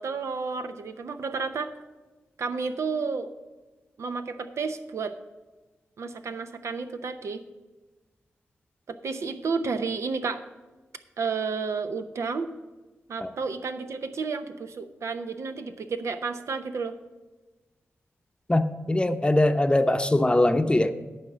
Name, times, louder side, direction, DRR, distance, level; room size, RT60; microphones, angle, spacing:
voice 1, 0.0-1.7 2.4-3.3 4.0-5.2 6.0-7.4 8.9-10.4 11.2-12.5 13.1-17.0, right 4 dB, 75° right, 8 dB, 0.7 m, -31 dB
voice 2, 18.5-20.9, left 1 dB, 20° left, 8 dB, 0.7 m, -22 dB
11.0 x 4.3 x 7.9 m, 1.2 s
cardioid pair, 50°, 5 cm